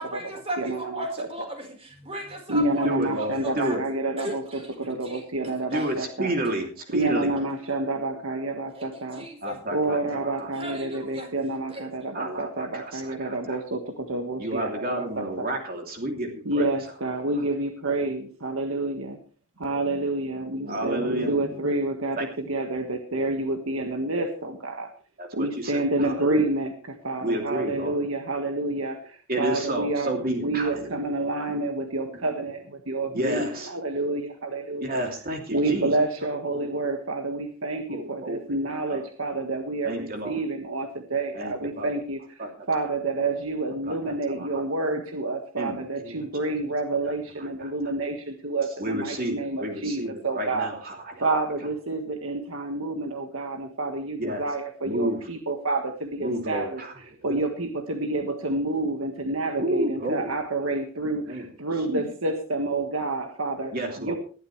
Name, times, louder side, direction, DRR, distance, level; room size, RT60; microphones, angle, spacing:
voice 1, 0.0-3.8 4.2-5.2 5.7-5.9 8.7-9.6 10.5-11.3 11.7-11.9, right 1 dB, 25° right, 4 dB, 4.3 m, -36 dB
voice 2, 0.6-1.3 2.5-6.3 6.9-9.3 9.7-15.5 16.4-19.2 19.6-24.9 25.3-35.0 35.5-42.2 42.7-50.7 51.2-56.8 57.2-64.2, right 2 dB, 65° right, 5 dB, 1.6 m, -29 dB
voice 3, 2.8-3.8 5.7-7.4 9.4-10.5 12.1-13.6 14.4-16.7 19.9-20.0 20.6-21.7 22.2-22.3 25.2-26.4 27.2-28.0 29.3-31.0 32.1-32.2 33.1-33.7 34.8-35.9 36.5-36.7 37.9-38.5 38.9-39.0 39.8-40.4 41.3-41.9 42.4-42.5 43.9-44.6 45.6-46.2 47.6-47.7 48.8-51.3 54.2-54.4 54.8-55.2 56.2-56.9 57.3-57.4 59.6-60.4 61.0-61.5 61.9-62.0 63.7-64.2, right 1 dB, 45° right, 2 dB, 2.9 m, -31 dB
20.0 x 12.0 x 3.2 m, 0.39 s
head